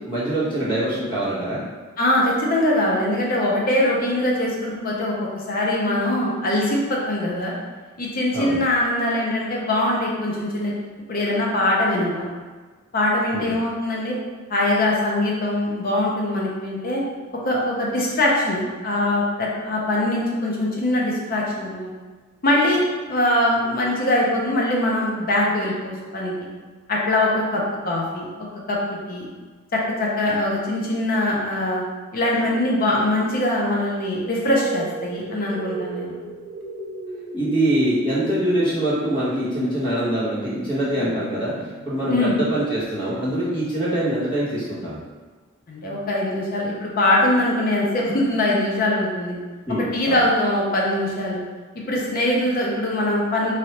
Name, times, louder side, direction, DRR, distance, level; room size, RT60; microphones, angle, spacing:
voice 1, 0.0-1.6 8.3-8.6 13.3-13.5 37.3-41.5 41.8-45.0 49.6-50.1, right 1 dB, 25° left, -9 dB, 1.2 m, -24 dB
voice 2, 2.0-7.5 8.0-10.7 11.1-12.3 12.9-14.2 14.5-17.0 17.4-21.9 22.4-22.8 23.1-26.3 26.9-28.3 28.7-29.3 29.7-31.8 32.1-36.1 42.1-42.3 45.7-49.4 49.9-51.4 51.9-53.5, left 1 dB, 45° left, -3 dB, 0.7 m, -22 dB
sound 1, 34.2-43.1, right 2 dB, 50° right, 0.5 m, -35 dB
3.2 x 2.6 x 2.9 m, 1.4 s
head